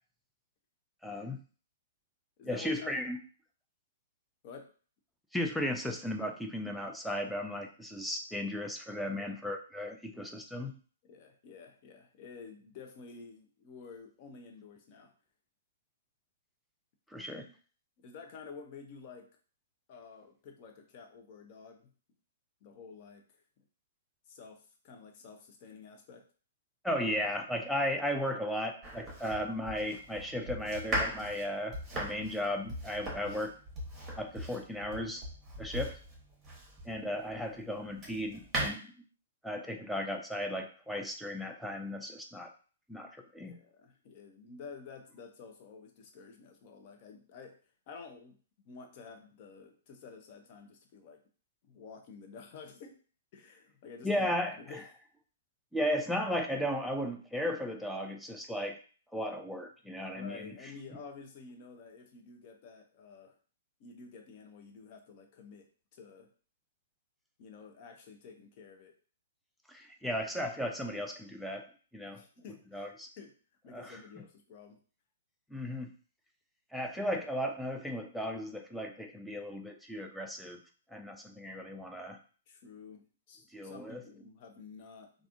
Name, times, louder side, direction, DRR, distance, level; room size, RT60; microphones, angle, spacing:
voice 1, 1.0-1.4 2.5-3.2 5.3-10.7 17.1-17.4 26.8-33.5 34.1-35.3 35.6-35.9 36.8-38.9 39.4-42.5 42.9-43.6 54.0-54.8 55.7-58.8 59.1-60.5 69.7-71.7 71.9-72.2 72.7-73.1 73.7-74.0 75.5-75.9 76.7-80.6 80.9-82.2 83.5-84.0, equal, ahead, 3 dB, 0.4 m, -35 dB
voice 2, 2.4-2.9 4.4-4.7 9.1-9.4 11.0-15.1 17.4-17.5 18.0-19.3 19.9-21.9 22.6-23.6 24.3-26.3 43.4-47.6 47.9-48.4 48.6-51.2 51.6-53.0 53.3-54.8 60.1-63.4 63.8-66.3 67.4-68.9 72.0-73.3 73.6-74.8 82.5-85.1, left 5 dB, 40° left, 4 dB, 0.7 m, -50 dB
Domestic sounds home sounds, 28.8-37.0 37.6-38.7, right 1 dB, 15° right, 1.1 m, -39 dB
3.4 x 2.4 x 2.5 m, 0.40 s
figure-of-eight pair, 120°, 0 cm